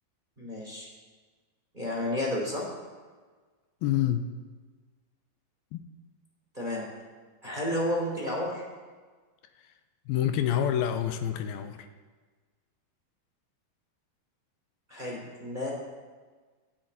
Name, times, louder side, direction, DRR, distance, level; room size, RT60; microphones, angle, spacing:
voice 1, 0.4-0.9 1.7-2.7 6.5-6.8 7.4-8.6 14.9-15.7, left 1 dB, 15° right, -3 dB, 2.5 m, -31 dB
voice 2, 3.8-4.3 5.7-5.8 10.1-11.9, left 10 dB, 85° left, 8 dB, 2.6 m, -27 dB
25.5 x 8.9 x 4.1 m, 1.4 s
omnidirectional pair, 4.5 m